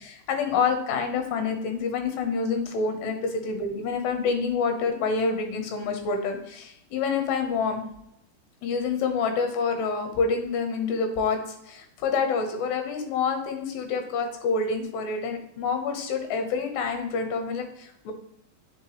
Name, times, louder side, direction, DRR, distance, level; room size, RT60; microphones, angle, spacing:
voice 1, 0.0-7.8 8.6-18.1, left 5 dB, 80° left, 5 dB, 3.1 m, -27 dB
9.0 x 5.0 x 3.1 m, 0.75 s
omnidirectional pair, 4.8 m